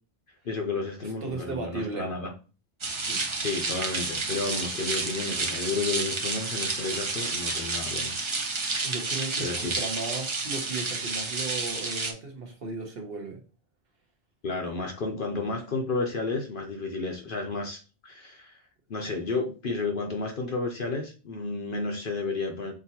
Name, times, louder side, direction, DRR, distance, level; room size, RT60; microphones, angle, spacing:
voice 1, 0.4-2.3 3.4-8.2 9.4-9.7 14.4-18.6 18.9-22.7, left 3 dB, 50° left, 2 dB, 0.8 m, -32 dB
voice 2, 1.2-2.1 2.9-3.2 8.8-13.4, right 3 dB, 50° right, 2 dB, 1.0 m, -35 dB
sound 1, 2.8-12.1, right 3 dB, 35° right, 0.5 m, -30 dB
6.1 x 2.6 x 2.8 m, 0.34 s
omnidirectional pair, 1.3 m